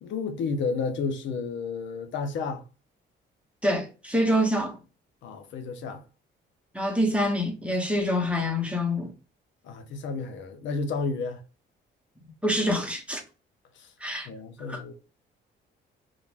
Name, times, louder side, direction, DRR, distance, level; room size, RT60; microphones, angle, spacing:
voice 1, 0.0-2.6 5.2-6.0 9.6-11.4 13.7-13.9 14.2-14.9, left 4 dB, 70° left, 0.6 m, -31 dB
voice 2, 3.6-4.8 6.7-9.1 12.4-13.2 14.0-14.3 14.7-14.8, equal, 5° right, 0.7 m, -26 dB
2.5 x 2.2 x 3.2 m
cardioid pair, 90°, 20 cm